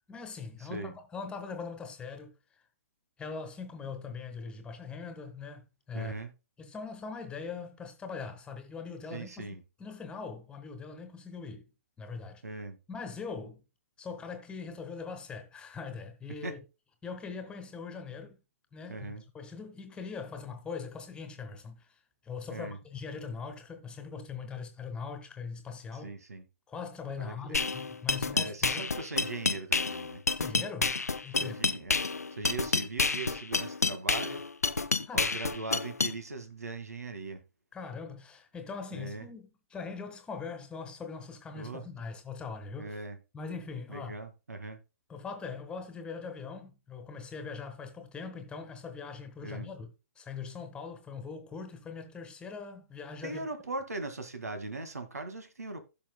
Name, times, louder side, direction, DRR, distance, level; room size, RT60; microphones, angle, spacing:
voice 1, 0.1-2.3 3.2-6.1 6.6-11.7 12.0-12.4 12.9-13.6 14.0-16.6 17.0-18.4 18.7-21.9 22.2-26.2 26.7-28.9 30.4-31.6 35.0-35.3 37.7-43.0 43.3-44.1 45.1-53.4, left 5 dB, 10° left, 1.6 m, -41 dB
voice 2, 0.6-0.9 5.9-6.3 9.1-9.6 12.4-12.8 16.4-16.5 18.9-19.2 22.5-22.8 26.0-26.4 27.2-27.7 28.3-30.2 31.4-32.0 32.3-34.5 35.1-37.4 38.9-39.3 41.5-41.8 42.8-43.2 43.9-44.8 49.4-49.7 53.2-55.8, right 3 dB, 80° right, 2.0 m, -39 dB
sound 1, 27.5-36.1, left 4 dB, 90° left, 0.6 m, -29 dB
15.5 x 6.1 x 2.3 m
figure-of-eight pair, 125°, 8 cm